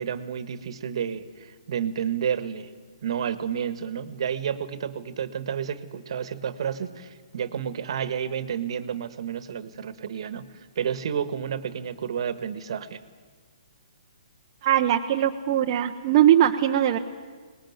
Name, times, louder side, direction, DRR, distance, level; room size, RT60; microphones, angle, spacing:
voice 1, 0.0-2.7 3.0-13.0, right 8 dB, 55° right, 13 dB, 1.4 m, -30 dB
voice 2, 14.6-17.0, right 11 dB, 35° right, 2 dB, 0.8 m, -20 dB
22.5 x 19.5 x 9.4 m, 1.5 s
hypercardioid pair, 155°, 3 cm